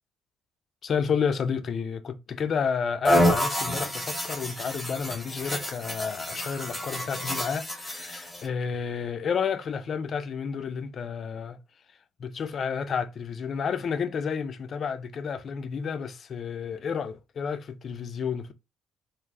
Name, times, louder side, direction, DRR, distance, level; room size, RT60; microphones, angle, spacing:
voice 1, 0.8-11.6 12.2-18.5, left 6 dB, 40° left, 0.3 m, -31 dB
sound 1, 3.0-8.5, equal, 5° left, 0.8 m, -28 dB
3.3 x 2.4 x 2.5 m
cardioid pair, 145°, 0 cm